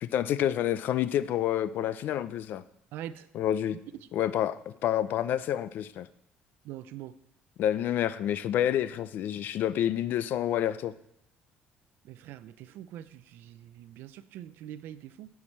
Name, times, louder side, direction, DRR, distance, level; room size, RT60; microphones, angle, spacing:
voice 1, 0.0-2.6 3.3-3.8 4.1-6.1 7.6-10.9, left 11 dB, 60° left, 0.5 m, -28 dB
voice 2, 2.9-3.3 6.6-7.1 12.0-15.3, right 11 dB, 75° right, 0.5 m, -43 dB
9.7 x 4.8 x 7.3 m
cardioid pair, 140°, 4 cm